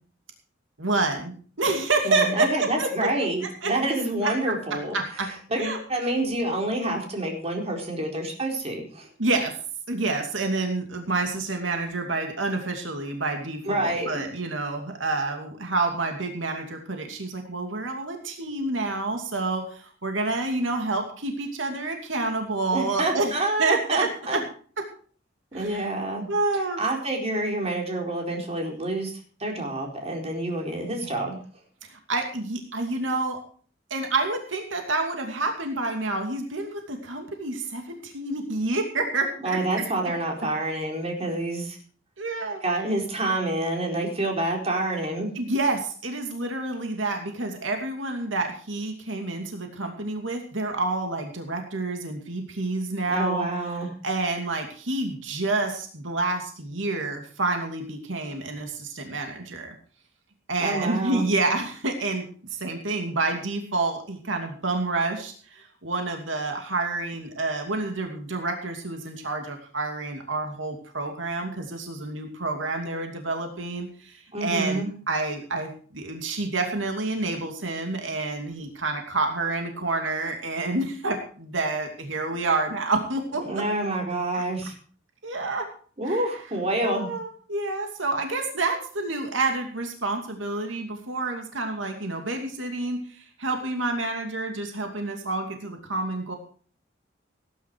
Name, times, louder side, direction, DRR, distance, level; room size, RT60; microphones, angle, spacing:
voice 1, 0.8-3.1 3.6-3.7 4.2-4.3 4.9-5.3 5.6-5.8 9.2-9.5 9.9-24.4 25.5-25.9 26.3-26.9 31.0-31.3 31.8-33.4 33.9-39.8 42.2-42.6 45.3-53.5 54.0-59.7 60.5-62.3 62.5-83.4 84.3-84.7 85.2-85.6 86.1-86.2 86.8-96.3, right 2 dB, 85° right, 3 dB, 2.6 m, -28 dB
voice 2, 2.0-5.0 5.5-9.1 13.7-14.2 22.7-24.4 25.5-26.3 26.8-29.1 29.4-31.4 39.4-41.8 42.6-45.3 53.1-53.9 60.6-61.3 74.3-74.9 83.4-84.7 86.0-87.1, right 2 dB, 35° right, 1 dB, 4.4 m, -27 dB
18.0 x 10.5 x 4.7 m, 0.44 s
head